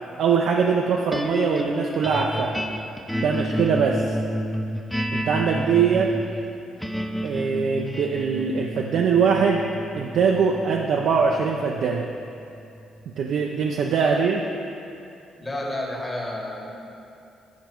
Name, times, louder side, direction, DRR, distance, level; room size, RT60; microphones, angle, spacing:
voice 1, 0.2-2.6 3.2-4.2 5.1-6.2 7.2-9.7 10.0-12.1 13.2-14.4, right 6 dB, 75° right, 0 dB, 0.5 m, -22 dB
sound 1, 1.1-13.4, equal, 5° left, 0.5 m, -31 dB
voice 2, 14.0-14.4 15.4-16.7, left 1 dB, 20° left, -2 dB, 1.6 m, -31 dB
9.5 x 5.1 x 4.4 m, 2.6 s
cardioid pair, 90°, 0 cm